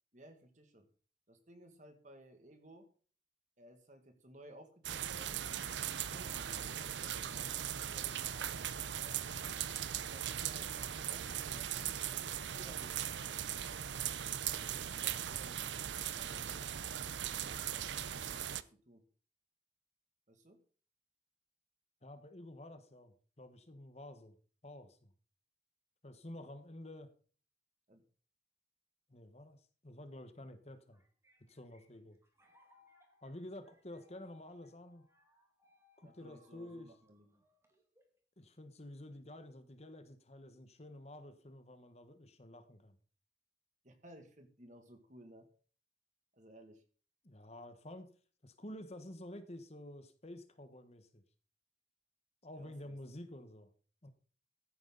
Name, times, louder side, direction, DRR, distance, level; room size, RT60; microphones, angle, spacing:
voice 1, 0.1-0.9 1.3-2.9 3.6-5.5 5.8-9.2 10.0-14.4 14.7-15.6 16.1-19.0 20.3-20.6 27.9-28.0 36.0-37.4 43.8-45.5 46.3-46.8 52.5-53.0, right 1 dB, 40° right, 6 dB, 2.1 m, -58 dB
sound 1, 4.8-18.6, right 10 dB, 75° right, 0.6 m, -39 dB
voice 2, 22.0-24.4 24.6-25.1 26.0-27.1 29.1-31.0 31.5-32.2 33.2-35.0 36.0-36.9 38.4-43.0 47.2-48.1 48.4-51.2 52.4-53.7 54.0-54.1, left 1 dB, 35° left, 10 dB, 1.2 m, -50 dB
sound 2, 30.7-38.2, left 2 dB, 15° right, 2.2 m, -69 dB
15.0 x 9.4 x 4.0 m, 0.41 s
head